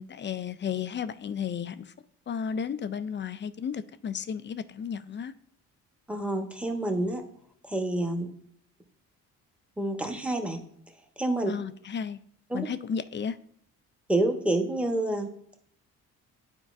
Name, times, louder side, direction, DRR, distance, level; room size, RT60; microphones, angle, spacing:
voice 1, 0.0-1.9 2.3-5.3 11.5-12.2 12.5-13.4, left 7 dB, 30° left, 0.4 m, -33 dB
voice 2, 6.1-7.2 7.6-8.3 9.8-10.6 11.2-11.5 12.5-12.7 14.1-15.3, right 1 dB, 5° right, 1.1 m, -28 dB
9.8 x 4.5 x 2.5 m
supercardioid pair, 55°, 36 cm